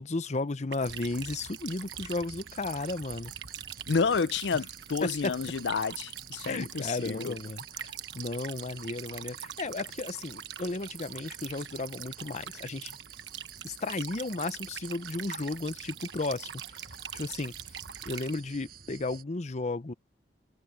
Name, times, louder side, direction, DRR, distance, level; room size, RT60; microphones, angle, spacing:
voice 1, 0.0-3.3 5.0-5.3 6.5-13.0 13.6-16.8 17.1-17.5 18.0-19.9, left 3 dB, 40° left, 0.8 m, -34 dB
sound 1, 0.7-18.4, right 10 dB, 90° right, 1.1 m, -43 dB
sound 2, 0.8-19.2, right 6 dB, 60° right, 7.6 m, -51 dB
voice 2, 3.9-7.4, left 5 dB, 85° left, 0.6 m, -30 dB
head